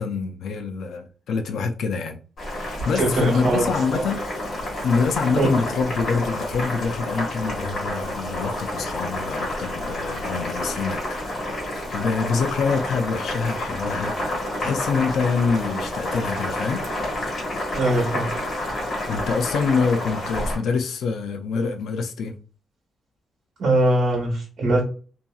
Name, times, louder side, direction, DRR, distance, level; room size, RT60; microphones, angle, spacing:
voice 1, 0.0-2.2 2.5-4.4 4.8-16.9 19.1-22.4, left 5 dB, 65° left, 0.3 m, -26 dB
Boiling, 2.4-20.6, left 1 dB, 35° left, 1.4 m, -29 dB
voice 2, 2.9-3.6 3.9-4.0 5.3-5.5 17.7-18.3 23.6-24.8, right 2 dB, 50° right, 1.1 m, -21 dB
2.7 x 2.7 x 2.3 m
wide cardioid pair, 180°, 0 cm